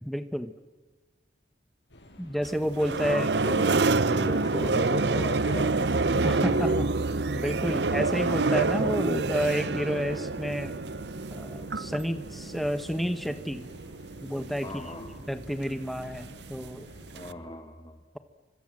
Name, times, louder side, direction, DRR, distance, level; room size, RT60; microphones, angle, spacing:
voice 1, 0.0-0.5 2.2-3.4 6.2-6.9 7.3-10.7 11.3-13.6 14.2-14.8 15.3-16.9, equal, ahead, 9 dB, 1.4 m, -30 dB
sound 1, 1.9-17.5, equal, 75° left, 6.8 m, -52 dB
sound 2, 2.4-17.3, right 3 dB, 70° right, 0.8 m, -28 dB
voice 2, 3.0-6.8 14.6-15.2 17.1-18.0, left 1 dB, 20° left, 5 dB, 1.7 m, -38 dB
30.0 x 25.5 x 7.7 m, 1.3 s
head